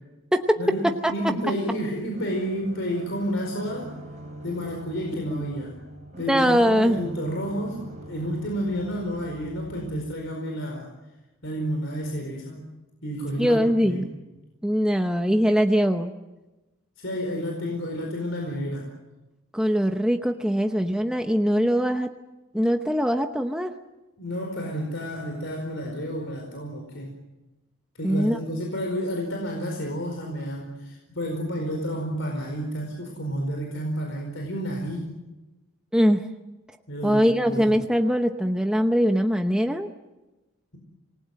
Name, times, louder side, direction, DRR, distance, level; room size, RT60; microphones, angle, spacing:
voice 1, 0.6-3.9 4.4-5.8 6.2-10.9 11.4-12.7 13.0-14.1 17.0-18.9 24.2-27.1 28.0-35.2 36.9-37.8, equal, 60° left, 1 dB, 4.6 m, -30 dB
sound 1, 2.1-10.1, right 1 dB, 35° right, 4.4 m, -43 dB
voice 2, 6.3-7.0 13.4-14.1 14.6-16.1 19.5-22.1 22.5-23.7 28.0-28.4 35.9-36.2 37.0-39.9, equal, 5° right, 5 dB, 0.9 m, -22 dB
27.5 x 20.0 x 7.7 m, 1.1 s
head